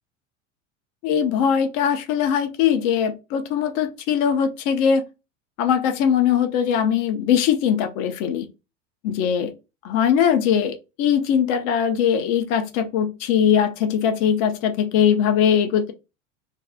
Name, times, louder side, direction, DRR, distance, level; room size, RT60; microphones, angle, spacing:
voice 1, 1.0-5.0 5.6-8.5 9.0-9.5 9.8-15.9, left 8 dB, 45° left, 0.7 m, -21 dB
2.6 x 2.3 x 3.4 m
hypercardioid pair, 90°, 39 cm